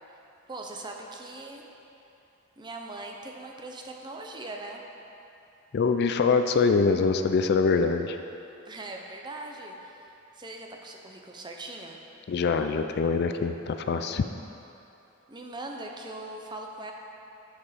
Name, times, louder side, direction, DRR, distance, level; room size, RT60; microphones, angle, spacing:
voice 1, 0.5-1.6 2.6-4.8 8.7-12.0 15.3-16.9, right 2 dB, 20° right, 1 dB, 0.7 m, -40 dB
voice 2, 5.7-8.2 12.3-14.2, left 4 dB, 55° left, 7 dB, 0.4 m, -24 dB
7.3 x 6.8 x 5.0 m, 2.9 s
head